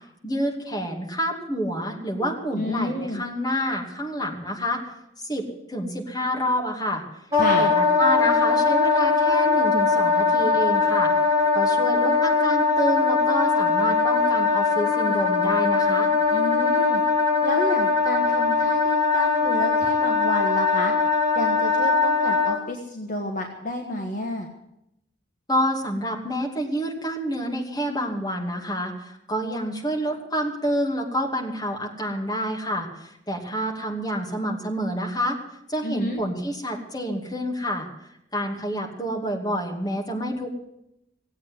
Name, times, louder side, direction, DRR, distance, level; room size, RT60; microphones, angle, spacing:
voice 1, 0.2-4.8 5.2-7.0 7.6-11.1 11.5-16.1 25.5-35.4 35.7-37.9 38.3-40.5, equal, 20° left, -1 dB, 2.7 m, -28 dB
voice 2, 2.5-3.2 7.4-7.7 16.3-17.0 17.4-20.9 21.3-24.5 35.8-36.2, left 1 dB, 40° left, 1 dB, 1.6 m, -30 dB
Wind instrument woodwind instrument, 7.3-22.6, left 4 dB, 15° right, 5.3 m, -21 dB
17.0 x 8.6 x 9.6 m, 0.81 s
head